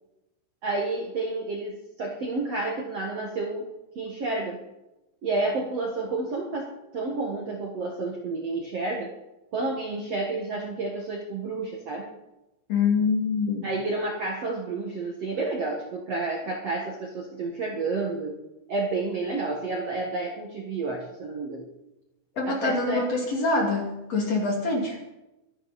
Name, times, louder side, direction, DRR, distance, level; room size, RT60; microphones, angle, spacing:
voice 1, 0.6-3.7 3.9-4.6 5.2-9.1 9.5-12.1 13.6-18.4 18.7-21.7 22.4-23.2, right 3 dB, 60° right, -1 dB, 1.6 m, -30 dB
voice 2, 12.7-13.7 22.4-25.0, left 3 dB, 40° left, 0 dB, 3.0 m, -25 dB
24.5 x 11.0 x 4.2 m, 0.97 s
omnidirectional pair, 5.4 m